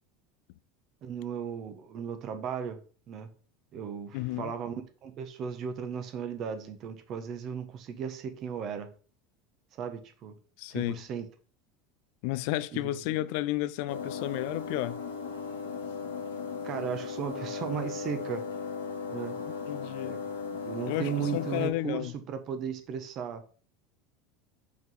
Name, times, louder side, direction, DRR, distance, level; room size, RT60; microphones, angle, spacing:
voice 1, 1.0-2.8 3.1-3.3 3.7-8.9 9.7-10.4 10.7-11.3 12.7-12.9 16.6-18.4 19.1-19.4 20.0-20.2 20.5-23.4, right 7 dB, 50° right, 1.2 m, -36 dB
voice 2, 4.1-4.5 10.6-11.0 12.2-15.0 19.4-20.2 20.9-22.1, left 16 dB, 65° left, 0.4 m, -32 dB
sound 1, 13.9-21.7, left 5 dB, 85° left, 1.0 m, -37 dB
5.3 x 4.0 x 4.7 m
hypercardioid pair, 90°, 0 cm